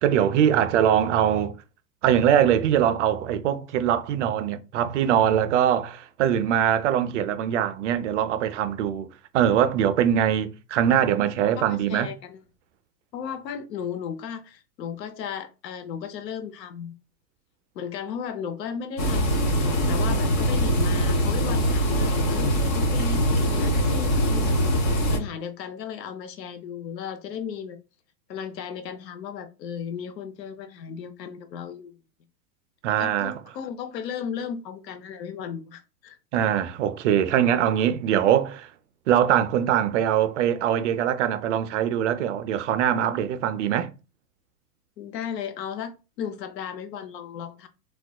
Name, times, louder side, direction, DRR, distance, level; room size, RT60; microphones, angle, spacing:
voice 1, 0.0-1.5 2.0-9.1 9.3-12.1 32.8-33.3 36.3-38.7 39.1-43.9, right 10 dB, 50° right, 0.4 m, -22 dB
voice 2, 11.6-12.4 13.1-16.9 17.7-27.8 28.3-31.9 33.0-36.2 45.0-47.7, left 7 dB, 75° left, 0.7 m, -35 dB
sound 1, 19.0-25.2, equal, 30° left, 0.5 m, -22 dB
3.4 x 2.3 x 2.2 m
hypercardioid pair, 120°, 50 cm